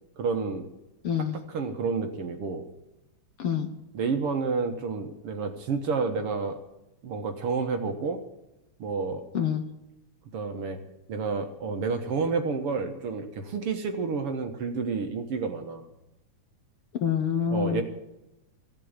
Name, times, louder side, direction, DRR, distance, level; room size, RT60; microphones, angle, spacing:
voice 1, 0.2-0.7 1.5-2.7 3.9-6.6 7.0-8.2 8.8-9.2 10.3-10.8 11.1-15.9 17.5-17.8, right 4 dB, 60° right, 6 dB, 2.0 m, -29 dB
voice 2, 1.0-1.3 3.4-3.7 9.3-9.6 17.0-17.8, left 8 dB, 60° left, 6 dB, 1.6 m, -26 dB
16.0 x 7.6 x 9.7 m, 0.94 s
omnidirectional pair, 3.4 m